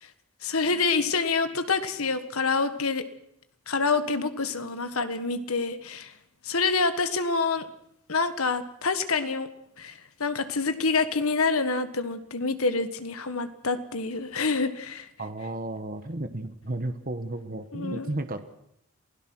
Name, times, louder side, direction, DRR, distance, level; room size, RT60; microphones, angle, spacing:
voice 1, 0.4-3.1 3.7-6.1 6.4-7.7 8.1-9.5 9.8-15.1 17.7-18.1, left 4 dB, 75° left, 11 dB, 1.5 m, -27 dB
voice 2, 15.2-18.4, right 1 dB, 40° right, 8 dB, 1.2 m, -33 dB
27.5 x 17.0 x 6.2 m, 0.75 s
head